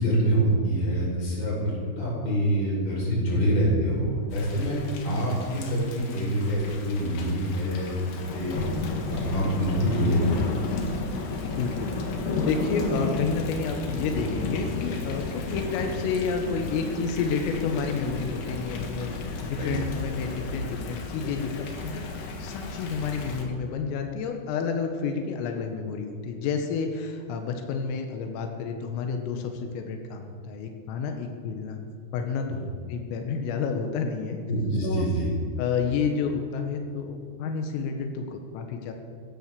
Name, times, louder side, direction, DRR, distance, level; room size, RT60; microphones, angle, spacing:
voice 1, 0.0-4.7 5.0-8.6 9.1-10.3 19.6-19.7 32.5-32.6 34.5-35.3, right 1 dB, 25° left, -5 dB, 5.8 m, -26 dB
Thunder / Rain, 4.3-23.4, left 3 dB, 60° left, 2.6 m, -33 dB
voice 2, 11.6-11.9 12.4-19.1 19.4-31.8 32.1-32.6 32.9-34.4 34.8-35.1 35.6-38.9, left 5 dB, 90° left, 4 dB, 3.9 m, -30 dB
16.0 x 12.5 x 6.9 m, 2.1 s
omnidirectional pair, 5.8 m